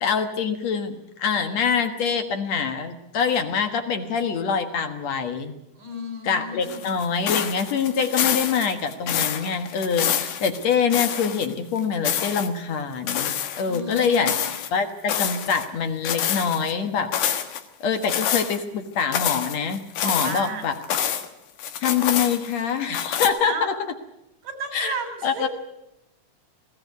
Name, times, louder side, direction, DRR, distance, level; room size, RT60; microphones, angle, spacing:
voice 1, 0.0-5.5 6.2-14.3 14.7-17.1 17.8-20.7 21.8-23.7 24.7-25.0 25.2-25.5, left 6 dB, 60° left, 7 dB, 2.4 m, -25 dB
voice 2, 5.8-6.8 13.6-14.4 20.0-20.7 23.5-23.7 24.4-25.5, right 2 dB, 75° right, 7 dB, 5.0 m, -33 dB
sound 1, 6.6-11.5 11.8-12.5 13.1-14.7 15.1-15.7 16.0-16.7 17.1-17.6 18.0-18.6 19.0-21.3 21.6-22.6 22.9-23.3, left 9 dB, 80° left, 3.0 m, -27 dB
20.0 x 17.0 x 9.3 m, 0.90 s
omnidirectional pair, 3.7 m